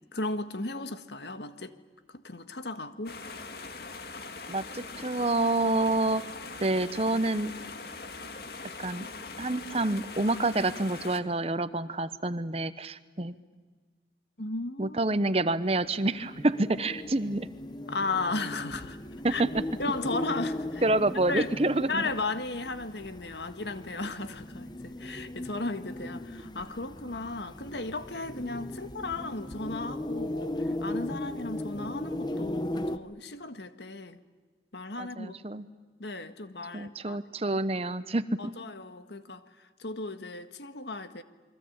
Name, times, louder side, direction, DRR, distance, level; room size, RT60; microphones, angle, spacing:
voice 1, 0.1-1.7 2.1-3.2 14.4-15.0 17.9-19.0 19.3-19.4 19.8-20.8 21.3-21.5 21.9-34.2 34.7-35.6 36.0-37.2 38.4-39.4 39.8-41.2, left 3 dB, 80° left, 9 dB, 1.7 m, -35 dB
sound 1, 3.1-11.2, left 3 dB, 65° left, 2.0 m, -42 dB
voice 2, 4.5-6.2 6.6-7.5 8.8-9.1 9.4-13.3 14.8-17.5 19.2-19.5 20.8-22.0 35.0-35.6 36.7-38.5, right 2 dB, 35° right, 14 dB, 0.9 m, -28 dB
sound 2, 15.8-33.0, left 1 dB, 25° left, 1.0 m, -37 dB
28.5 x 23.0 x 8.8 m, 1.4 s
head